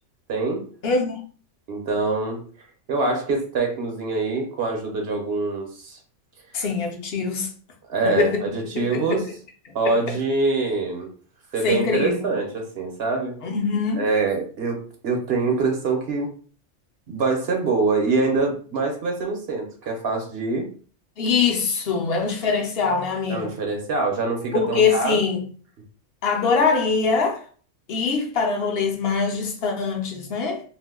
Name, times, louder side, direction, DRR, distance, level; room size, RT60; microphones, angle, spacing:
voice 1, 0.3-0.7 1.7-2.4 2.9-6.0 7.8-9.2 9.7-11.1 11.5-13.4 14.0-14.8 15.0-16.3 17.1-20.7 23.3-25.3, right 3 dB, 60° right, 0.9 m, -24 dB
voice 2, 0.8-1.2 6.5-7.5 8.0-8.4 8.7-9.2 9.8-10.1 11.6-12.2 13.4-14.1 21.2-23.5 24.5-25.4 26.2-27.4 27.9-30.6, left 5 dB, 60° left, 0.8 m, -23 dB
2.5 x 2.2 x 3.5 m
omnidirectional pair, 1.3 m